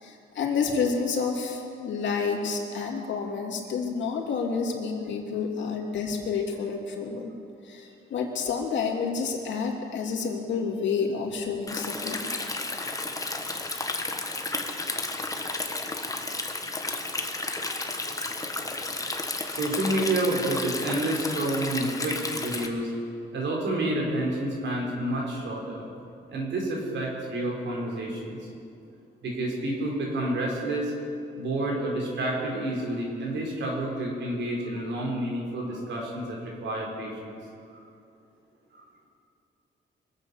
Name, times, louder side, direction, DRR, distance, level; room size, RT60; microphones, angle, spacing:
voice 1, 0.0-7.3 7.6-12.3, left 5 dB, 65° left, 0 dB, 2.8 m, -29 dB
Stream, 11.7-22.7, left 2 dB, 15° left, 1.4 m, -32 dB
voice 2, 17.6-18.3 19.5-22.9 23.3-25.9 26.3-28.5 29.2-30.9 31.4-37.4 37.7-37.8 38.8-38.9, right 1 dB, 65° right, -1 dB, 4.6 m, -29 dB
23.5 x 8.2 x 7.1 m, 2.5 s
cardioid pair, 90°, 20 cm